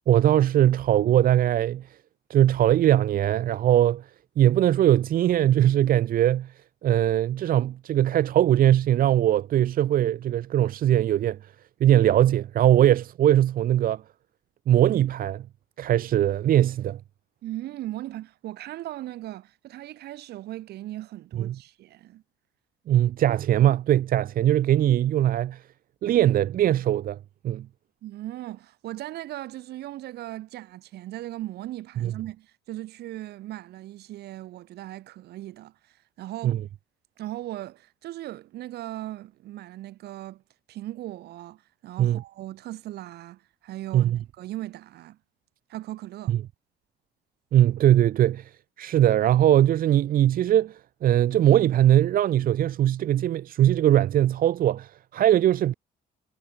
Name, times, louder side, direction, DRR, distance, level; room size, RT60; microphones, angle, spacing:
voice 1, 0.1-1.8 2.3-4.0 4.4-6.5 6.8-11.4 11.8-14.0 14.7-15.4 15.8-17.0 21.3-21.5 22.9-25.6 26.0-27.2 27.4-27.6 32.0-32.1 36.4-36.6 42.0-42.2 43.9-44.2 47.5-48.5 48.8-55.7, right 12 dB, 60° right, 1.3 m, -21 dB
voice 2, 17.4-22.2 28.0-36.6 37.2-40.4 40.7-45.2 45.7-46.4, right 15 dB, 75° right, 3.5 m, -38 dB
cardioid pair, 110°, 17 cm